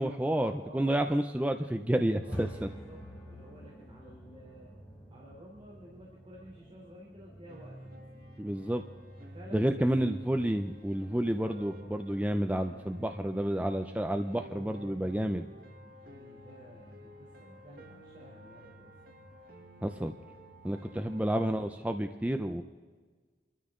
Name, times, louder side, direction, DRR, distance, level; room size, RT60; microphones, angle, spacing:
voice 1, 0.0-2.7 8.4-8.8 9.5-15.5 19.8-20.1 20.6-22.6, right 1 dB, 10° right, 6 dB, 0.5 m, -30 dB
voice 2, 0.5-1.2 2.2-4.8 5.1-7.9 9.2-10.0 11.4-13.4 15.8-19.2 20.7-21.2, equal, 30° right, -4 dB, 3.5 m, -53 dB
sound 1, 2.1-22.0, equal, 10° left, 3.3 m, -50 dB
Piano, 7.5-21.2, equal, 55° right, 1.7 m, -54 dB
27.5 x 13.5 x 3.8 m, 1.4 s
head